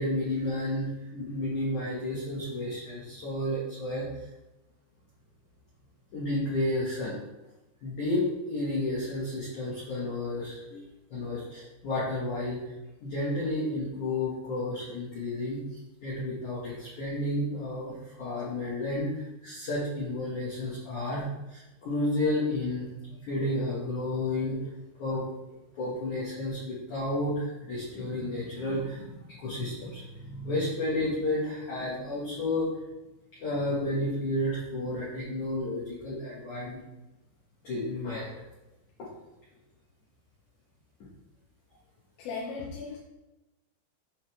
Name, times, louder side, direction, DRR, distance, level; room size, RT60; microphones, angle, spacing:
voice 1, 0.0-4.1 6.1-7.2 7.8-12.7 13.0-24.7 25.0-25.2 25.8-32.7 33.4-36.8 37.6-38.4, left 1 dB, 55° left, -7 dB, 2.2 m, -31 dB
voice 2, 42.2-43.0, left 4 dB, 80° left, -4 dB, 3.7 m, -36 dB
9.1 x 5.8 x 3.5 m, 0.99 s
omnidirectional pair, 5.8 m